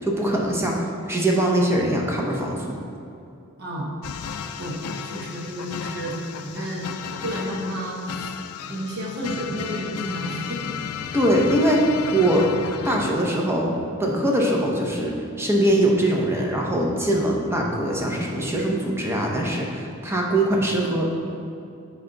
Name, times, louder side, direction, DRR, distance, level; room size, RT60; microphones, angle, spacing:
voice 1, 0.0-2.8 11.1-11.8 12.1-12.5 12.8-13.7 14.0-21.1, right 1 dB, 10° right, -1 dB, 0.7 m, -22 dB
voice 2, 3.6-3.9 4.6-6.2 6.4-6.9 7.2-8.3 8.7-10.8 11.1-11.2, equal, 50° right, -3 dB, 1.1 m, -31 dB
sound 1, 4.0-13.1, left 7 dB, 80° left, 0.4 m, -34 dB
9.3 x 3.4 x 3.9 m, 2.7 s
head